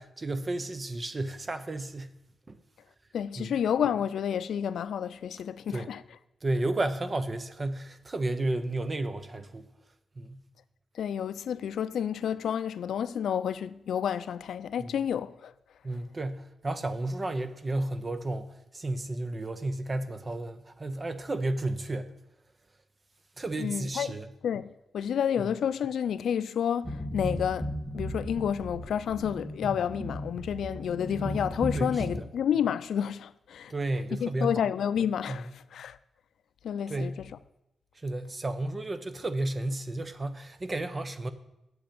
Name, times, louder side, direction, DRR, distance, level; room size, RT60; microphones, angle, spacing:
voice 1, 0.0-2.1 2.5-2.6 3.4-3.6 5.7-5.9 6.4-9.6 10.2-10.4 14.8-14.9 15.8-22.1 23.4-24.3 25.4-25.5 31.7-32.3 33.7-34.6 35.3-35.4 36.9-37.2 38.0-41.3, right 2 dB, 25° right, 0.7 m, -32 dB
voice 2, 3.1-6.0 11.0-15.5 23.6-24.2 24.4-33.7 34.2-36.0 36.6-37.1, left 8 dB, 80° left, 0.4 m, -30 dB
sound 1, 26.8-32.1, equal, ahead, 1.7 m, -35 dB
7.9 x 7.7 x 8.6 m
wide cardioid pair, 155°, 0 cm